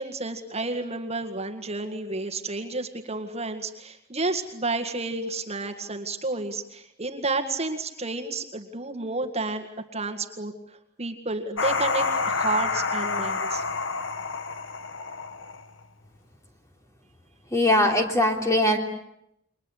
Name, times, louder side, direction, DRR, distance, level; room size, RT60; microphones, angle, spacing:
voice 1, 0.0-9.7 9.9-13.6, right 3 dB, 35° right, 4 dB, 1.9 m, -31 dB
sound 1, 11.6-15.8, left 4 dB, 70° left, 1.4 m, -28 dB
voice 2, 17.5-18.8, left 1 dB, 15° left, 3 dB, 3.2 m, -21 dB
29.0 x 23.0 x 8.1 m, 0.80 s
head